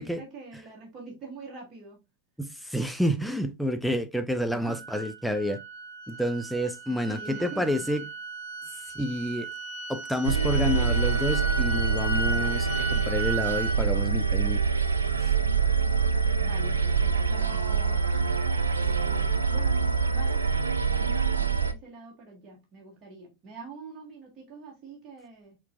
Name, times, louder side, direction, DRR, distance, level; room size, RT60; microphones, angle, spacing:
voice 1, 0.0-2.0 4.4-4.8 7.0-8.1 8.6-8.7 16.4-18.1 18.8-20.4 20.9-25.6, right 3 dB, 25° right, 1.7 m, -45 dB
voice 2, 2.4-5.6 6.1-8.0 9.0-9.5 9.9-14.6 15.2-15.3, equal, ahead, 0.5 m, -29 dB
sound 1, 4.6-13.8, right 2 dB, 50° left, 1.2 m, -36 dB
sound 2, 10.2-21.7, right 5 dB, 75° right, 0.4 m, -25 dB
5.8 x 3.1 x 2.5 m
figure-of-eight pair, 90°, 0 cm